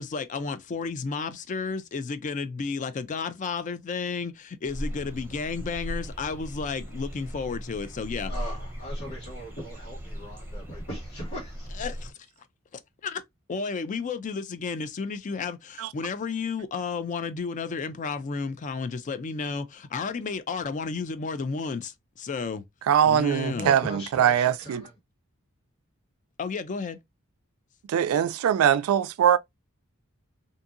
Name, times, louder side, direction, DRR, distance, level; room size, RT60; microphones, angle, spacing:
voice 1, 0.0-8.3 11.8-12.1 12.7-13.2 13.5-22.6 23.1-23.7 26.4-27.0, left 5 dB, 35° left, 0.4 m, -32 dB
sound 1, 4.6-12.1, equal, 10° right, 0.8 m, -37 dB
voice 2, 8.2-11.7 23.5-24.9, right 1 dB, 60° left, 1.7 m, -39 dB
voice 3, 22.9-24.9 27.9-29.4, right 9 dB, 85° right, 0.3 m, -22 dB
2.7 x 2.6 x 2.5 m
head